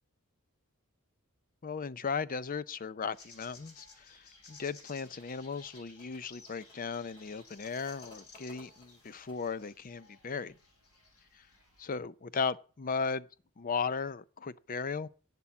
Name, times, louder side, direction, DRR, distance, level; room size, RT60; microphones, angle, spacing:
voice 1, 1.6-10.6 11.3-11.4 11.8-13.3 13.6-15.1, left 5 dB, 40° left, 0.5 m, -36 dB
sound 1, 3.1-11.9, left 4 dB, 85° left, 6.8 m, -57 dB
sound 2, 4.8-9.7, left 2 dB, 25° left, 5.6 m, -59 dB
11.5 x 8.3 x 5.9 m
head